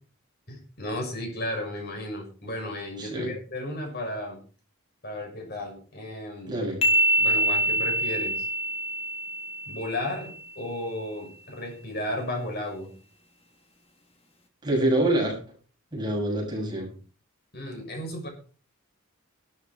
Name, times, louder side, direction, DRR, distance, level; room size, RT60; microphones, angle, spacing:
voice 1, 0.5-4.4 5.0-6.6 7.2-8.5 9.7-12.9 17.5-18.3, left 1 dB, 50° left, 2 dB, 6.7 m, -34 dB
voice 2, 3.0-3.3 6.5-6.8 14.6-15.4 15.9-16.9, right 1 dB, 20° right, 0 dB, 7.4 m, -26 dB
sound 1, 6.8-10.4, right 1 dB, 30° left, 3.0 m, -25 dB
15.5 x 13.0 x 4.6 m, 0.38 s
head